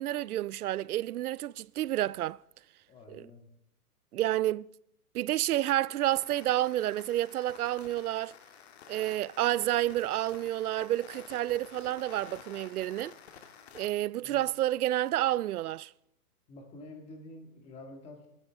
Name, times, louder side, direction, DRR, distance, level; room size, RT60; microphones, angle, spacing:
voice 1, 0.0-2.4 3.1-3.3 4.1-4.7 5.1-8.3 8.9-13.1 13.7-15.9, right 14 dB, 70° right, 0.5 m, -30 dB
voice 2, 2.9-3.4 14.2-14.4 16.5-18.3, left 2 dB, 15° left, 1.8 m, -48 dB
sound 1, 6.0-13.9, left 8 dB, 45° left, 1.6 m, -51 dB
26.5 x 13.5 x 3.5 m
hypercardioid pair, 170°, 47 cm